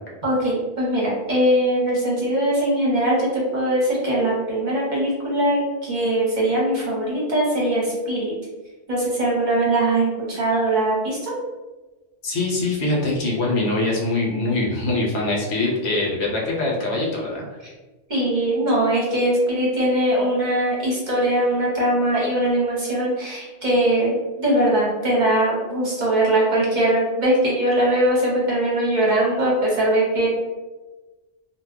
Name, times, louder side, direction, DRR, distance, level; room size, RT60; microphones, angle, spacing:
voice 1, 0.2-8.3 8.9-11.3 18.1-30.3, right 1 dB, 45° right, -5 dB, 0.8 m, -21 dB
voice 2, 12.2-17.4, left 2 dB, 65° left, -2 dB, 0.9 m, -23 dB
2.3 x 2.2 x 3.6 m, 1.2 s
omnidirectional pair, 1.2 m